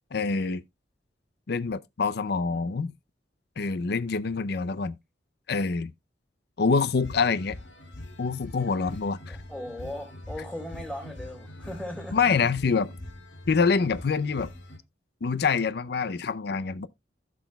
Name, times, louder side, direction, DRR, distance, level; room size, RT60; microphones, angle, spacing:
voice 1, 0.1-0.6 1.5-2.9 3.6-5.0 5.5-5.9 6.6-7.6 8.2-9.4 12.1-12.9 13.5-14.5 15.2-16.9, left 5 dB, 60° left, 0.5 m, -26 dB
sound 1, 7.0-14.8, left 1 dB, 85° left, 2.2 m, -43 dB
voice 2, 9.3-12.5, left 1 dB, 5° left, 3.7 m, -38 dB
15.5 x 6.1 x 2.2 m
head